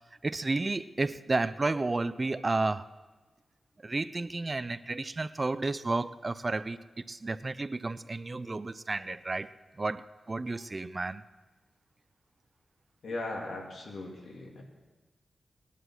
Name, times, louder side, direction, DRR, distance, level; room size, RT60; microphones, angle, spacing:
voice 1, 0.2-2.8 3.8-9.5 9.8-11.2, right 3 dB, 25° right, 0.4 m, -32 dB
voice 2, 13.0-14.6, left 2 dB, 75° left, 3.0 m, -38 dB
19.5 x 11.0 x 6.2 m
wide cardioid pair, 155°, 0 cm